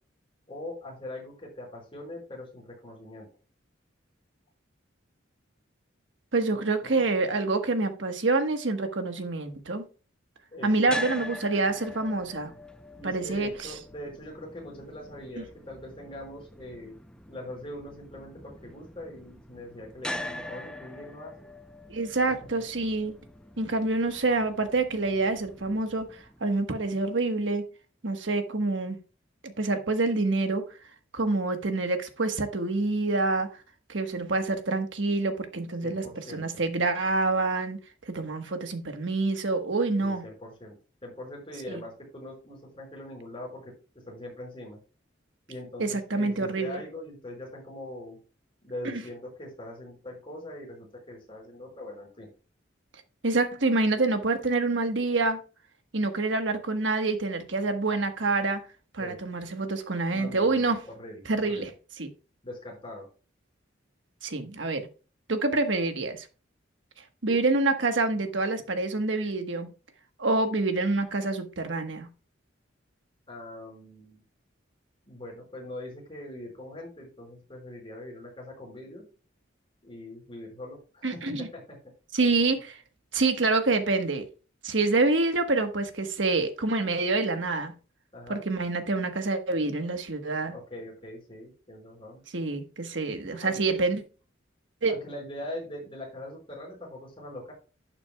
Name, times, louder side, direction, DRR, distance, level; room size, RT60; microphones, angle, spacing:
voice 1, 0.5-3.3 6.5-7.0 10.5-11.0 12.9-17.0 17.3-21.5 22.3-22.6 35.8-36.6 40.0-40.7 41.0-43.6 44.1-44.8 45.5-48.2 48.6-52.3 59.0-59.2 60.1-61.7 62.4-63.0 73.3-74.2 75.1-79.0 79.8-81.8 88.1-88.4 90.5-92.2 93.4-93.9 94.9-97.5, left 1 dB, 30° left, 5.2 m, -42 dB
voice 2, 6.3-9.8 10.6-12.5 13.0-13.7 15.4-15.5 21.9-23.1 23.6-27.6 28.0-29.0 29.4-30.6 31.1-33.5 33.9-37.8 38.1-40.2 41.7-41.8 45.8-46.8 48.8-49.0 53.2-55.4 55.9-58.6 58.9-60.8 61.3-61.7 62.0-62.1 64.2-64.9 65.3-66.3 67.2-69.7 70.2-72.1 81.0-81.5 82.1-82.8 83.1-84.2 84.6-87.7 88.3-90.5 92.3-94.0 94.8-94.9, right 3 dB, 70° right, 1.3 m, -27 dB
sound 1, 10.9-27.0, left 1 dB, 5° left, 0.6 m, -43 dB
11.5 x 8.8 x 2.3 m
head